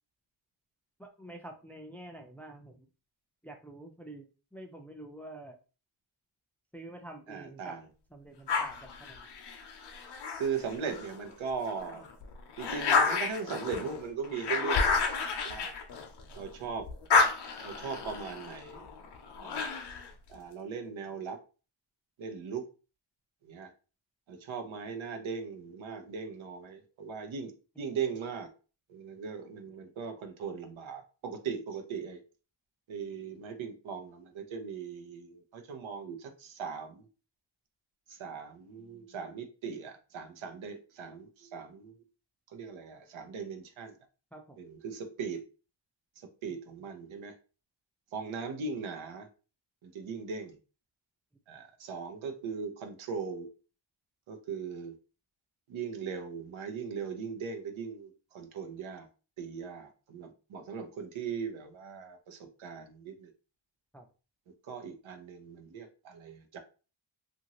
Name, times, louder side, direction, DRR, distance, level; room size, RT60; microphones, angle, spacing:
voice 1, 1.0-2.9 3.4-5.6 6.7-7.7 8.1-9.3 27.8-27.9 44.3-44.6 46.5-46.6 63.9-64.1, right 1 dB, 5° left, 3 dB, 0.4 m, -48 dB
voice 2, 7.3-7.9 10.4-12.1 12.6-15.0 15.4-15.7 16.3-16.9 17.6-18.9 19.4-19.7 20.3-21.4 22.2-22.7 23.4-23.7 24.3-27.5 27.8-28.5 28.9-32.2 32.9-37.1 38.1-41.9 42.5-44.0 44.6-45.4 46.2-47.3 48.1-49.3 49.8-50.6 51.5-53.5 54.3-54.9 55.7-59.1 59.4-63.3 64.7-66.6, right 5 dB, 90° right, 5 dB, 0.7 m, -39 dB
sound 1, 8.5-11.2 11.7-16.5 16.8-20.1, left 4 dB, 60° left, 0.7 m, -31 dB
2.8 x 2.6 x 2.9 m, 0.34 s
wide cardioid pair, 100°, 46 cm